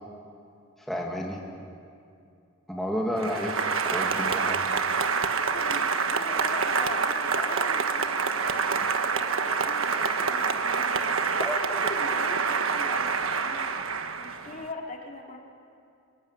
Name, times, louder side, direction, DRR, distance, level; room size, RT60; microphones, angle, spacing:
voice 1, 0.8-1.4 2.7-4.6 11.4-11.6, equal, ahead, -2 dB, 2.4 m, -31 dB
Applause, 3.2-14.7, right 5 dB, 70° right, 1.4 m, -27 dB
voice 2, 5.5-15.4, left 2 dB, 35° left, 0 dB, 3.5 m, -41 dB
26.0 x 23.0 x 9.9 m, 2.5 s
head